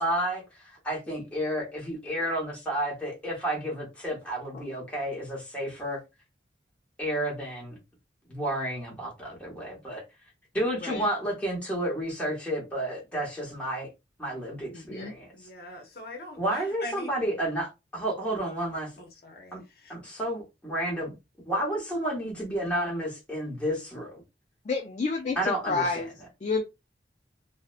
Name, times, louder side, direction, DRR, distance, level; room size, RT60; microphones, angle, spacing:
voice 1, 0.0-6.0 7.0-7.8 8.3-10.0 10.5-13.9 14.2-15.3 16.4-18.9 19.5-19.6 19.9-21.1 21.5-24.2 25.3-26.1, right 1 dB, 5° left, 1.0 m, -31 dB
voice 2, 14.7-15.1 24.7-25.4 25.7-26.1 26.4-26.6, left 4 dB, 40° left, 0.3 m, -29 dB
voice 3, 15.3-17.1 19.0-19.9, left 2 dB, 55° left, 0.7 m, -43 dB
2.5 x 2.1 x 2.4 m
head